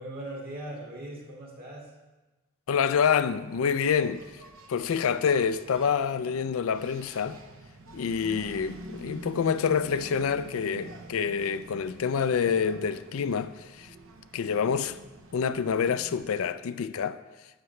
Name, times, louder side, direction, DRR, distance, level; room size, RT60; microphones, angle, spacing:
voice 1, 0.0-1.9, right 1 dB, 45° right, 1.9 m, -40 dB
voice 2, 2.7-4.2 4.7-7.4 7.9-13.9 14.3-15.0 15.3-17.2, left 6 dB, 70° left, 0.4 m, -27 dB
Engine, 3.4-16.4, right 2 dB, 65° right, 0.8 m, -47 dB
11.5 x 8.0 x 3.2 m
head